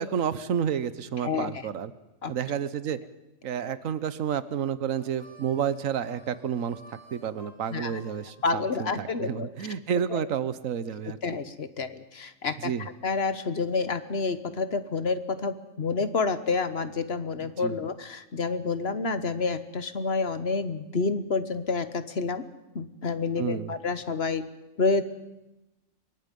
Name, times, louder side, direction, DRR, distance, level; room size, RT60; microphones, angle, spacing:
voice 1, 0.0-1.9 2.3-3.0 3.4-6.8 7.1-11.4 12.6-12.9 17.4-17.7 23.4-23.7, right 8 dB, 80° right, 14 dB, 1.4 m, -30 dB
voice 2, 1.2-1.5 2.2-2.3 7.7-7.9 8.4-9.5 10.1-10.2 11.2-22.4 22.7-24.5 24.8-25.0, left 4 dB, 50° left, 12 dB, 1.5 m, -29 dB
Harmonica, 4.9-9.2, right 1 dB, 30° left, 5.6 m, -54 dB
26.0 x 23.0 x 5.4 m, 0.95 s
omnidirectional pair, 1.4 m